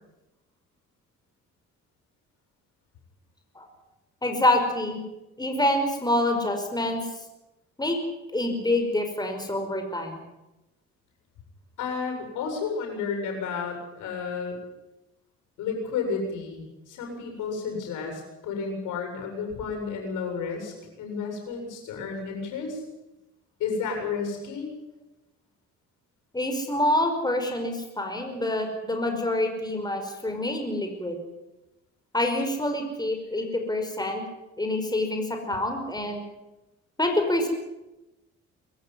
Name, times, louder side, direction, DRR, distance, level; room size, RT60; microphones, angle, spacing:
voice 1, 4.2-5.0 5.4-7.0 7.8-8.0 8.3-10.2 26.3-31.2 32.1-34.2 34.6-36.2 37.0-37.5, left 1 dB, 15° left, 4 dB, 5.4 m, -26 dB
voice 2, 11.8-14.6 15.6-22.8 23.6-24.7, left 5 dB, 90° left, 3 dB, 7.8 m, -32 dB
23.5 x 14.5 x 9.6 m, 0.98 s
cardioid pair, 90°, 30 cm